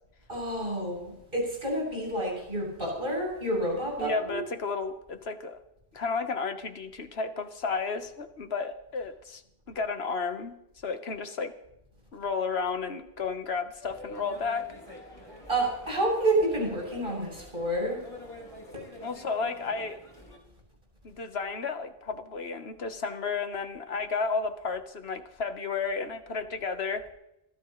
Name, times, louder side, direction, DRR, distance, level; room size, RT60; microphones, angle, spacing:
voice 1, 0.3-4.4 15.5-18.0, right 1 dB, 60° right, -2 dB, 8.4 m, -29 dB
voice 2, 4.0-5.6 5.9-9.4 9.7-10.5 10.8-11.5 12.1-14.7 19.0-20.0 21.0-27.0, left 4 dB, 80° left, 8 dB, 1.5 m, -32 dB
sound 1, 13.8-20.4, left 1 dB, 30° left, 4.2 m, -46 dB
25.5 x 17.0 x 3.2 m, 0.87 s
omnidirectional pair, 1.0 m